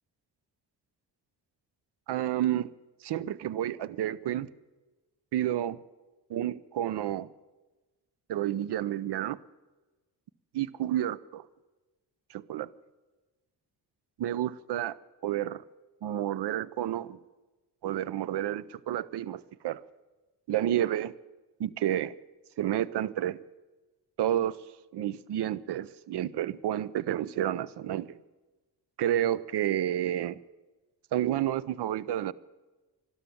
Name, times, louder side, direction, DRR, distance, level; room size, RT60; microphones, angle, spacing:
voice 1, 2.1-2.7 3.0-4.5 5.3-5.8 6.3-7.3 8.3-9.4 10.5-11.5 12.3-12.7 14.2-15.0 15.2-15.6 16.0-17.2 17.8-19.8 20.5-21.1 21.6-22.1 22.6-23.4 24.2-24.6 24.9-28.2 29.0-30.4 31.1-32.3, right 12 dB, 65° right, 0.7 m, -30 dB
12.5 x 12.0 x 9.1 m
supercardioid pair, 55°, 43 cm